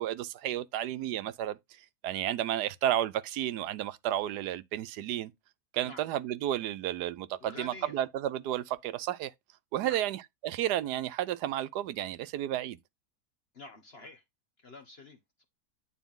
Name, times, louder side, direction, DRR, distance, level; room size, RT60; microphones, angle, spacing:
voice 1, 0.0-1.6 2.0-5.3 5.7-9.3 9.7-12.8, right 12 dB, 85° right, 1.2 m, -32 dB
voice 2, 7.4-8.0 9.8-10.0 13.5-14.2 14.6-15.4, left 2 dB, 40° left, 1.3 m, -48 dB
9.2 x 4.3 x 3.6 m
omnidirectional pair, 1.7 m